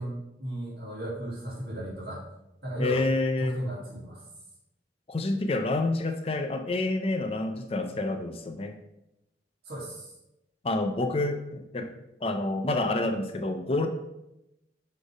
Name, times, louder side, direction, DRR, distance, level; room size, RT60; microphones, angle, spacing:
voice 1, 0.0-2.2 2.6-3.1 3.4-4.2 9.7-10.1, right 1 dB, 60° right, -6 dB, 2.3 m, -35 dB
voice 2, 2.8-3.6 5.1-8.8 10.6-11.9 12.2-13.9, left 2 dB, 35° left, 6 dB, 0.4 m, -28 dB
6.4 x 3.3 x 4.9 m, 0.89 s
head